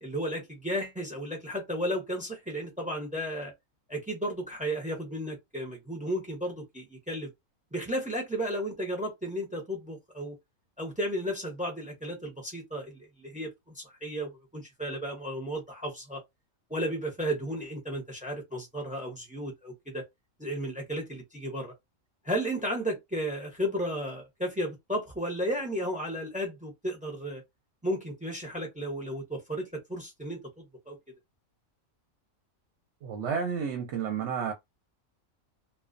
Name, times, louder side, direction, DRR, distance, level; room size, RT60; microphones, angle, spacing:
voice 1, 0.0-3.5 3.9-7.3 7.7-10.4 10.8-13.5 13.7-16.2 16.7-20.0 20.4-21.7 22.2-27.4 27.8-31.0, equal, 10° right, 0.4 m, -34 dB
voice 2, 33.0-34.5, right 6 dB, 65° right, 0.8 m, -31 dB
2.3 x 2.2 x 2.4 m
omnidirectional pair, 1.5 m